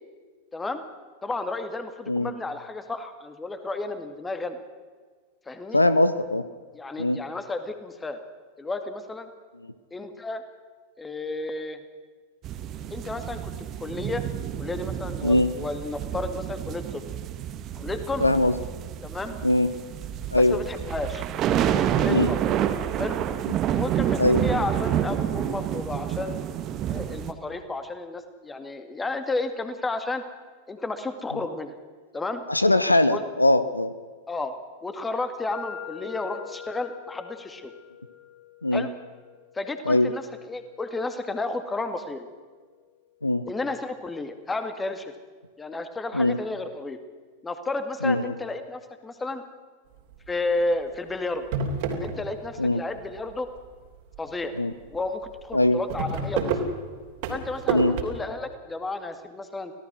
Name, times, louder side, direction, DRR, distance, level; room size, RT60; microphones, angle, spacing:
voice 1, 0.5-0.8 1.2-4.6 5.5-5.8 6.7-8.2 8.6-9.3 9.9-10.4 11.0-11.8 12.9-13.5 13.8-14.2 14.6-17.0 17.8-18.3 19.0-19.4 20.5-22.4 23.0-23.2 23.7-26.5 26.9-30.2 30.7-31.7 32.1-32.4 33.1-33.2 34.3-34.5 34.8-37.7 38.7-38.9 39.5-42.3 43.5-45.1 45.6-47.0 47.4-49.4 50.3-51.4 51.9-53.5 54.2-54.5 54.9-56.4 57.3-59.7, left 2 dB, 10° left, 9 dB, 2.1 m, -32 dB
voice 2, 5.7-6.4 7.0-7.2 15.2-15.5 18.2-18.5 19.4-19.7 20.3-20.6 22.1-22.3 23.5-23.6 24.2-24.4 32.5-33.9 38.6-38.9 39.9-40.1 43.2-43.4 46.1-46.4 48.0-48.3 52.6-52.8 54.6-54.7 55.5-55.8 57.7-57.9, left 1 dB, 85° left, 14 dB, 0.9 m, -21 dB
sound 1, 12.4-27.3, right 10 dB, 35° right, 1.5 m, -29 dB
sound 2, 35.5-43.4, left 9 dB, 35° left, 5.5 m, -45 dB
sound 3, 50.1-50.5 51.0-51.1 51.4-52.7 53.0-53.6 54.1-54.3 54.6-54.7 54.9-55.0 55.4-58.0, right 4 dB, 50° right, 3.2 m, -29 dB
26.0 x 17.5 x 6.2 m, 1.5 s
figure-of-eight pair, 90°, 0 cm